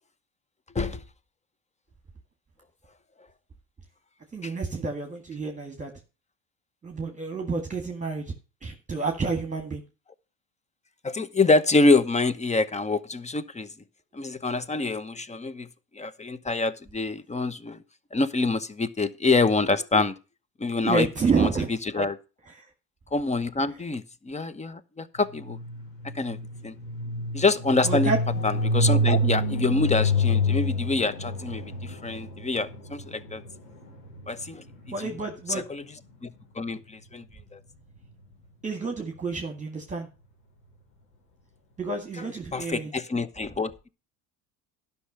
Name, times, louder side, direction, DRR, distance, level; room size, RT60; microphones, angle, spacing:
voice 1, 4.3-5.9 6.8-8.3 8.6-9.8 20.8-21.7 22.5-22.7 27.8-28.2 34.9-35.7 38.6-40.1 41.8-42.9, right 4 dB, 15° right, 2.0 m, -29 dB
voice 2, 11.0-13.7 14.1-15.7 15.9-17.8 18.1-20.1 20.6-21.1 21.4-21.5 21.9-22.2 23.1-25.6 26.1-26.4 26.6-26.7 27.3-28.1 28.4-33.4 34.3-34.6 35.5-35.8 36.2-37.2 37.5-37.6 42.5-43.7, left 3 dB, 15° left, 0.9 m, -26 dB
sound 1, 25.4-35.3, left 1 dB, 90° left, 3.6 m, -28 dB
11.5 x 6.0 x 6.7 m
hypercardioid pair, 80°, 47 cm